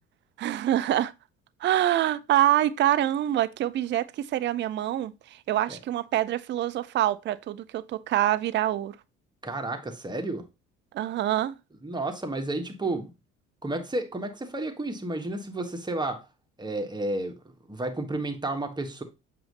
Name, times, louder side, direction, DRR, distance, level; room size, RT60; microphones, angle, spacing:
voice 1, 0.4-1.1 1.6-9.0 10.9-11.5, right 12 dB, 35° right, 0.5 m, -25 dB
voice 2, 9.4-10.5 11.8-13.1 13.6-16.3 16.6-17.4 17.7-19.0, right 2 dB, 10° right, 1.3 m, -31 dB
7.6 x 2.8 x 5.3 m
figure-of-eight pair, 50°, 35 cm